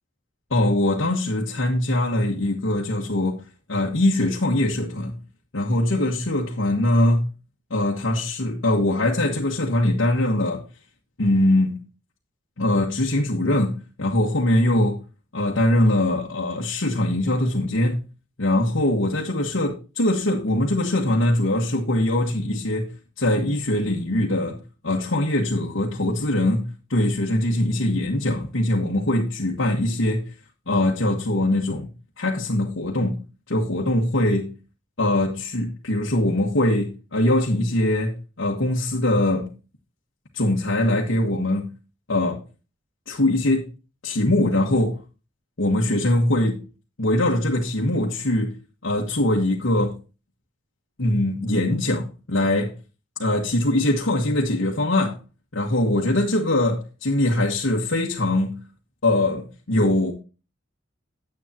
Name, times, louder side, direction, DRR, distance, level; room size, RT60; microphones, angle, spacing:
voice 1, 0.5-3.4 3.7-5.2 5.5-7.3 7.7-10.7 11.2-11.9 12.6-15.0 15.3-18.0 18.4-24.6 24.8-30.3 30.7-31.9 32.2-33.2 33.5-34.6 35.0-39.5 40.3-41.7 42.1-42.4 43.1-43.7 44.0-45.0 45.6-46.7 47.0-50.0 51.0-52.7 53.2-55.2 55.5-58.6 59.0-60.1, left 1 dB, 80° left, 1.4 m, -22 dB
9.9 x 8.2 x 2.9 m
head